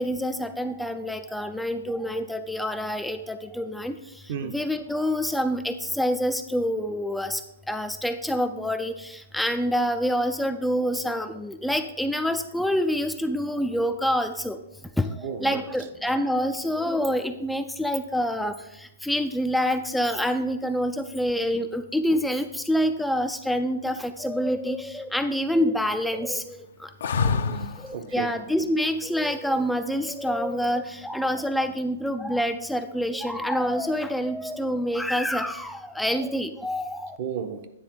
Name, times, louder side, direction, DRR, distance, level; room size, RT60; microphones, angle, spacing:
voice 1, 0.0-3.9 4.4-7.4 7.7-14.6 15.0-26.9 27.2-27.6 27.9-37.2, equal, ahead, 0.4 m, -27 dB
voice 2, 15.2-15.6 27.3-28.3 37.2-37.7, right 7 dB, 50° right, 0.8 m, -33 dB
sound 1, 27.0-27.9 30.5-31.1, left 5 dB, 70° left, 0.7 m, -26 dB
9.5 x 3.5 x 6.1 m
hypercardioid pair, 135°, 0 cm